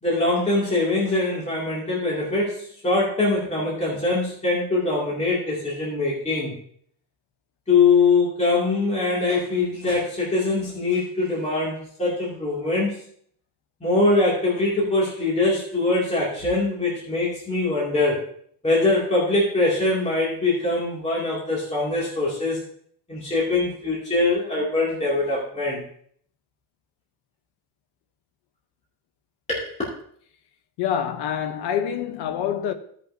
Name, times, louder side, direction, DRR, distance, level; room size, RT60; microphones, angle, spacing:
voice 1, 0.0-6.6 7.7-12.9 13.8-18.2 18.6-22.6 23.1-25.8 29.5-29.7, left 3 dB, 15° left, 2.5 m, -23 dB
voice 2, 30.8-32.7, left 9 dB, 85° left, 1.0 m, -26 dB
16.5 x 5.5 x 2.7 m
cardioid pair, 135°, 40 cm